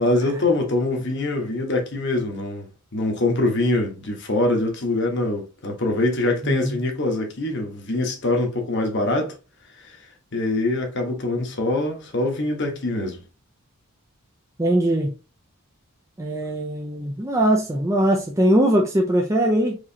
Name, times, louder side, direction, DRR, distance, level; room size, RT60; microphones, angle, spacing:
voice 1, 0.0-9.3 9.8-9.9 10.3-13.2, left 2 dB, 50° left, 1.2 m, -24 dB
voice 2, 14.6-15.2 16.2-19.8, right 1 dB, 15° right, 0.5 m, -21 dB
4.9 x 3.1 x 2.8 m
head